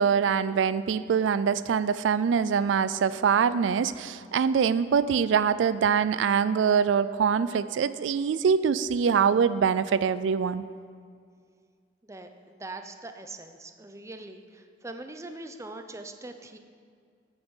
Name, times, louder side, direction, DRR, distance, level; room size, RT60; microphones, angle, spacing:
voice 1, 0.0-10.6, right 6 dB, 90° right, 15 dB, 0.3 m, -24 dB
voice 2, 12.0-16.6, right 2 dB, 15° right, 7 dB, 0.6 m, -42 dB
8.9 x 7.9 x 7.2 m, 2.1 s
head